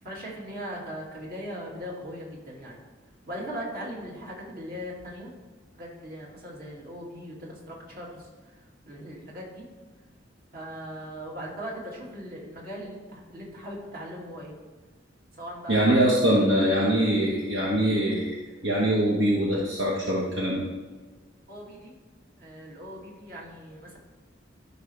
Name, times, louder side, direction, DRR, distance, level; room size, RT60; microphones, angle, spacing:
voice 1, 0.0-2.8 3.3-5.3 5.7-9.6 10.5-14.6 15.4-15.9 16.2-16.6 21.5-21.9 22.4-24.0, equal, 55° right, -4 dB, 2.4 m, -39 dB
voice 2, 15.7-18.4 18.6-20.6, right 1 dB, 75° right, -4 dB, 1.3 m, -23 dB
13.5 x 5.8 x 3.4 m, 1.3 s
head